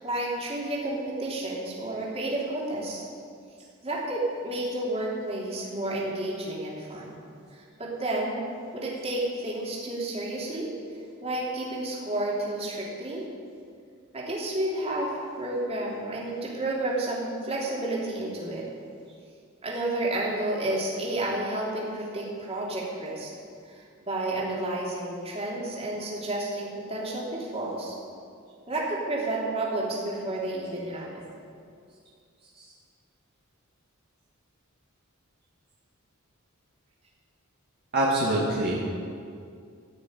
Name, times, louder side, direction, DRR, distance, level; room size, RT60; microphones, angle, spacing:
voice 1, 0.0-3.0 3.8-8.4 8.7-10.7 11.2-13.3 14.1-18.6 19.6-23.3 23.7-27.9 28.7-31.3, right 1 dB, 30° right, -4 dB, 3.0 m, -31 dB
voice 2, 37.9-38.8, right 1 dB, 50° right, -6 dB, 2.1 m, -24 dB
14.5 x 6.6 x 9.4 m, 2.3 s
head